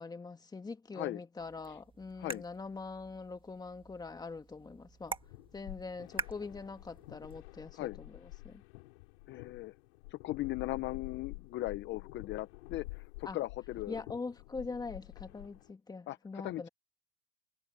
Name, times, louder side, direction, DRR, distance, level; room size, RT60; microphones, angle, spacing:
voice 1, 0.0-5.2 5.5-8.6 13.2-13.4 13.9-16.7, left 4 dB, 10° left, 1.7 m, -43 dB
sound 1, 1.4-7.4, right 4 dB, 15° right, 1.5 m, -46 dB
sound 2, 4.9-15.7, left 25 dB, 70° left, 6.2 m, -49 dB
voice 2, 9.3-9.7 10.1-14.0 16.1-16.7, left 16 dB, 35° left, 0.7 m, -38 dB
supercardioid pair, 130°, 34 cm